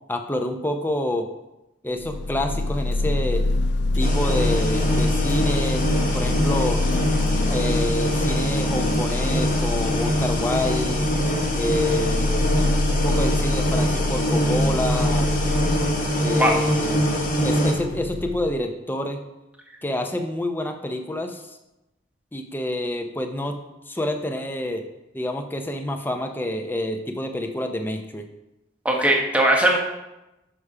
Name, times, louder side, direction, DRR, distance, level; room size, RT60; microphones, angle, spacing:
voice 1, 0.1-1.3 1.8-3.4 3.9-6.8 7.5-11.1 11.5-12.5 12.9-15.3 16.2-17.1 17.4-19.2 19.8-21.6 22.3-23.6 23.9-24.8 25.1-28.3, left 1 dB, 10° left, 5 dB, 0.5 m, -28 dB
elevator noise, 2.0-18.6, left 2 dB, 65° left, 0.3 m, -25 dB
sound 1, 4.0-17.7, equal, 40° left, 1.1 m, -24 dB
voice 2, 28.8-29.8, right 1 dB, 5° right, 0 dB, 0.9 m, -19 dB
6.2 x 4.9 x 5.5 m, 0.97 s
head